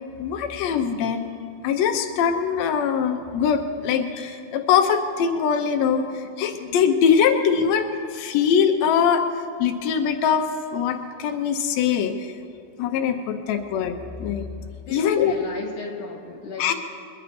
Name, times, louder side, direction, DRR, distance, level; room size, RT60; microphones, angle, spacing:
voice 1, 0.2-1.3 1.6-10.5 10.7-12.3 12.8-14.5 14.9-15.3 16.6-16.7, left 7 dB, 85° left, 5 dB, 1.5 m, -22 dB
voice 2, 14.8-16.7, left 4 dB, 45° left, -1 dB, 3.0 m, -34 dB
22.0 x 10.5 x 4.3 m, 2.4 s
omnidirectional pair, 4.1 m